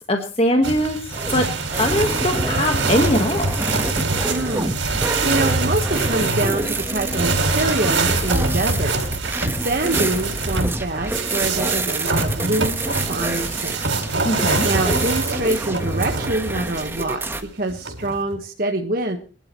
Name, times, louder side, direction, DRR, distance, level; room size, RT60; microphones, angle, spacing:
voice 1, 0.1-1.0 1.3-1.5 1.8-3.5 14.2-14.7, left 1 dB, 30° left, 4 dB, 1.4 m, -21 dB
sound 1, 0.6-17.0 17.7-18.4, right 3 dB, 90° right, 3.8 m, -24 dB
tb field burrito, 1.1-17.4, right 2 dB, 10° right, 1.2 m, -27 dB
voice 2, 4.3-8.9 9.5-13.9 14.6-17.2 17.5-19.2, right 2 dB, 50° right, 3 dB, 1.3 m, -25 dB
23.5 x 11.5 x 3.1 m, 0.36 s
head